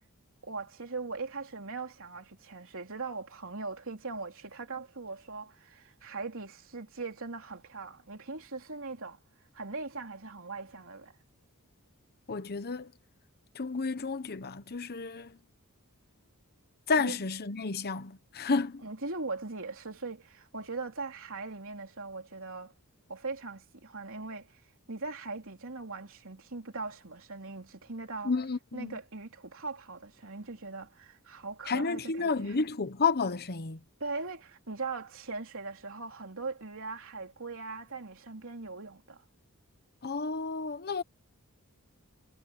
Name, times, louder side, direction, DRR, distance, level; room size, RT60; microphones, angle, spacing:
voice 1, 0.4-9.2 9.5-11.1 17.0-17.2 18.8-22.7 23.1-24.6 24.9-28.3 28.7-32.6 34.0-39.2, right 3 dB, 65° right, 3.4 m, -40 dB
voice 2, 12.3-12.9 13.5-15.4 16.9-18.8 28.2-28.9 31.7-33.8 40.0-41.0, left 4 dB, 45° left, 1.0 m, -31 dB
head